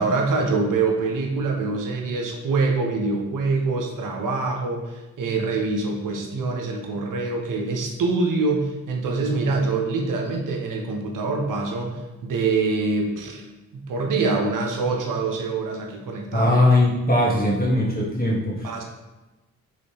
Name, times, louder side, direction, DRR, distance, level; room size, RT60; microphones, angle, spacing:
voice 1, 0.0-13.5 13.7-16.5 18.6-18.8, right 3 dB, 65° right, 2 dB, 0.7 m, -25 dB
voice 2, 16.3-18.7, left 1 dB, 25° left, -4 dB, 1.2 m, -20 dB
3.1 x 3.1 x 2.9 m, 1.1 s
supercardioid pair, 40°, 35 cm